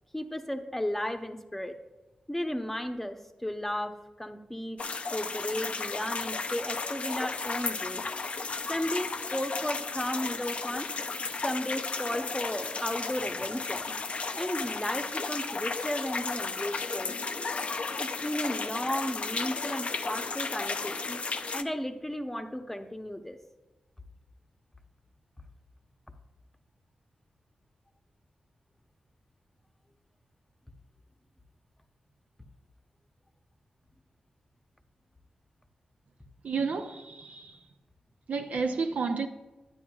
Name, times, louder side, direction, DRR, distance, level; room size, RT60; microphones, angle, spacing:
voice 1, 0.1-1.8 2.3-4.8 5.1-8.0 8.7-10.9 11.4-13.8 14.3-17.2 18.0-21.2 21.5-23.4, left 1 dB, 10° left, 0.8 m, -34 dB
sound 1, 4.8-21.6, left 4 dB, 50° left, 0.5 m, -34 dB
voice 2, 36.4-37.5 38.3-39.3, right 4 dB, 70° right, 0.7 m, -31 dB
9.9 x 9.2 x 2.4 m
cardioid pair, 60°, 3 cm